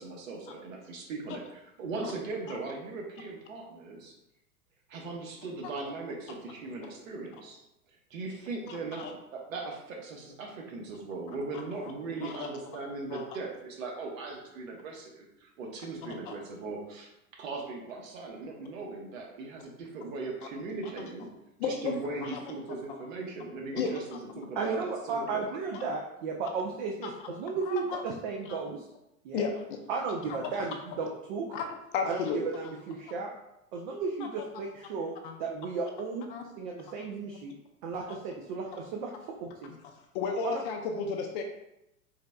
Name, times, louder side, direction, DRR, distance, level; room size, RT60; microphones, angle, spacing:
voice 1, 0.0-4.1 4.9-7.6 8.1-17.1 17.4-21.3 21.6-25.5, right 3 dB, 60° right, 0 dB, 1.1 m, -39 dB
voice 2, 8.7-9.1 11.5-11.9 12.2-12.5 13.1-13.3 16.0-16.4 21.6-21.9 22.2-22.4 23.8-24.2 25.7-25.8 27.0-27.3 27.7-28.0 28.5-28.6 29.3-29.8 30.3-30.5 31.5-32.5 35.2-35.4 36.3-36.4 36.9-37.0 40.1-41.4, left 5 dB, 35° left, 3 dB, 0.5 m, -34 dB
voice 3, 24.6-28.8 29.2-29.5 29.9-31.5 32.0-33.3 33.7-35.1 35.4-36.3 36.6-37.5 37.8-39.7 40.4-40.6, right 4 dB, 35° right, 0 dB, 0.5 m, -34 dB
4.1 x 4.0 x 2.2 m, 0.87 s
figure-of-eight pair, 90°, 45 cm